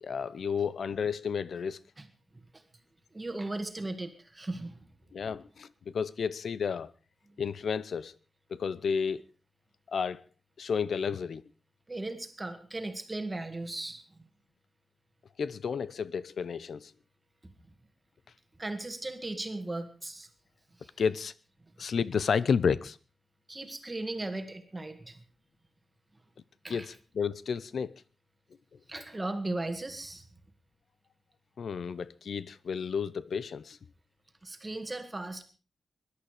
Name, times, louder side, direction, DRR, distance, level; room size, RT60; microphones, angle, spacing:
voice 1, 0.0-1.8 5.1-6.9 7.4-8.1 8.5-9.2 9.9-10.2 10.6-11.4 15.4-16.9 21.0-21.3 21.8-23.0 26.7-27.9 31.6-33.8, left 6 dB, 70° left, 0.7 m, -31 dB
voice 2, 3.1-4.8 11.9-14.0 18.6-20.3 20.8-20.9 23.5-25.2 26.6-26.9 28.9-30.2 34.4-35.4, right 2 dB, 20° right, 1.8 m, -37 dB
21.0 x 11.5 x 4.9 m
wide cardioid pair, 160°, 0 cm